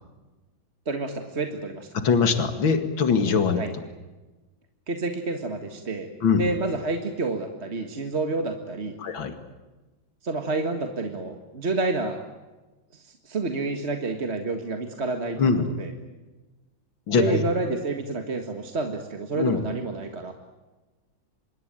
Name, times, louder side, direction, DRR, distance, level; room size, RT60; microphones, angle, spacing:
voice 1, 0.9-1.9 3.6-3.7 4.9-6.1 6.3-9.0 10.2-12.2 12.9-15.9 17.1-20.3, right 3 dB, 35° right, 5 dB, 1.8 m, -29 dB
voice 2, 1.9-3.6 6.2-6.4 9.0-9.3 15.4-15.7 17.1-17.4 19.3-19.6, left 5 dB, 75° left, 9 dB, 2.9 m, -22 dB
26.0 x 22.0 x 9.1 m, 1.2 s
omnidirectional pair, 2.1 m